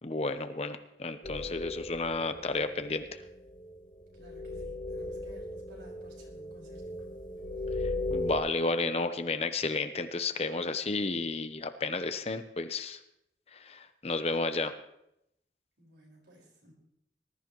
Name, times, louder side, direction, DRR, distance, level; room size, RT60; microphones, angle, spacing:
voice 1, 0.0-3.2 8.1-13.0 13.5-14.7, left 3 dB, 35° left, 9 dB, 0.8 m, -32 dB
sound 1, 1.2-8.4, left 2 dB, 50° left, 2.0 m, -37 dB
voice 2, 4.1-6.9 15.8-16.7, right 1 dB, 85° right, -2 dB, 5.1 m, -56 dB
20.0 x 13.0 x 3.1 m, 0.81 s
head